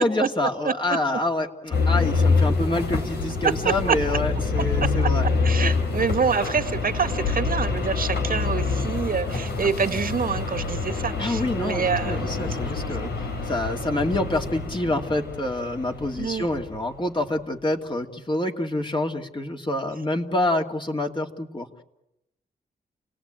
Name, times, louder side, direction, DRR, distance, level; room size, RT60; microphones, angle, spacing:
voice 1, 0.0-5.3 11.2-21.7, left 1 dB, 30° left, 2 dB, 2.7 m, -27 dB
voice 2, 0.6-1.0 3.4-4.0 4.8-4.9 5.4-12.5 16.2-16.5, right 5 dB, 60° right, 8 dB, 1.9 m, -26 dB
sound 1, 1.7-16.9, left 4 dB, 80° left, 3.6 m, -26 dB
29.5 x 18.5 x 9.0 m, 0.89 s
cardioid pair, 70°, 17 cm